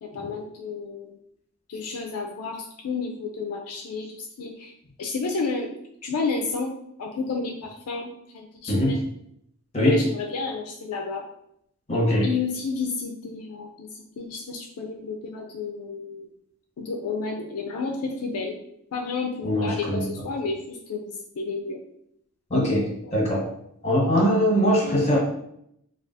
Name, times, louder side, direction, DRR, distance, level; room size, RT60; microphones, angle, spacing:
voice 1, 0.0-1.1 1.7-4.7 5.0-5.7 6.0-6.7 7.0-8.1 8.3-9.0 9.9-11.2 12.2-16.3 16.8-18.6 18.9-21.8 23.0-23.2 24.8-25.1, left 4 dB, 70° left, 2 dB, 0.4 m, -31 dB
voice 2, 8.7-9.0 9.7-10.0 11.9-12.2 19.4-20.1 22.5-23.5 23.8-25.2, equal, 30° left, -3 dB, 1.1 m, -21 dB
3.3 x 2.3 x 2.6 m, 0.75 s
head